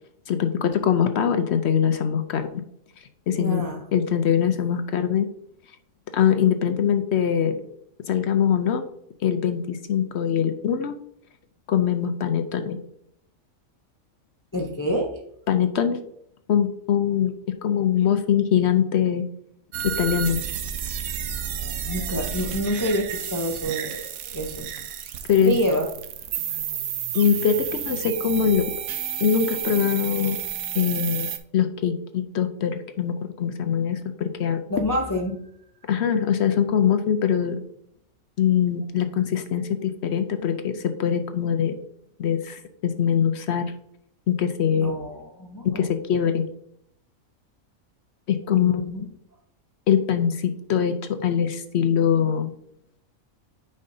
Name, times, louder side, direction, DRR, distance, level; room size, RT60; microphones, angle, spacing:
voice 1, 0.3-2.6 3.3-3.6 3.9-5.3 6.1-7.6 8.1-8.8 9.2-10.9 11.7-12.8 15.5-16.0 16.5-17.3 17.6-19.2 20.0-20.4 25.3-25.6 27.1-28.7 29.2-30.4 30.7-31.3 31.5-34.6 35.9-37.6 38.4-41.7 42.2-43.7 44.3-44.9 45.6-46.4 48.3-49.0 49.9-52.5, left 8 dB, 60° left, 8 dB, 0.8 m, -22 dB
voice 2, 3.3-3.8 14.5-15.2 21.5-24.7 25.4-25.9 34.7-35.5 44.8-45.9 48.5-49.1, equal, 20° left, 1 dB, 0.5 m, -27 dB
sound 1, 19.7-31.4, right 9 dB, 80° right, 1.1 m, -31 dB
8.6 x 5.4 x 2.6 m, 0.73 s
omnidirectional pair, 1.5 m